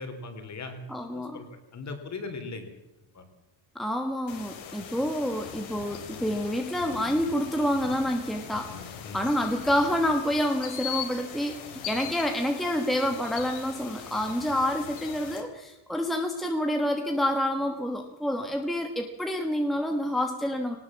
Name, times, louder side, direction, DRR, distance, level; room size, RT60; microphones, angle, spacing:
voice 1, 0.0-0.8 1.1-1.5 1.7-2.7 3.1-3.2 9.0-9.2, left 3 dB, 35° left, 7 dB, 3.3 m, -38 dB
voice 2, 0.9-1.4 3.7-11.6 11.9-20.8, equal, ahead, 3 dB, 1.4 m, -28 dB
sound 1, 4.3-15.4, left 8 dB, 70° left, 3.6 m, -40 dB
19.5 x 19.0 x 7.3 m, 0.95 s
cardioid pair, 165°, 48 cm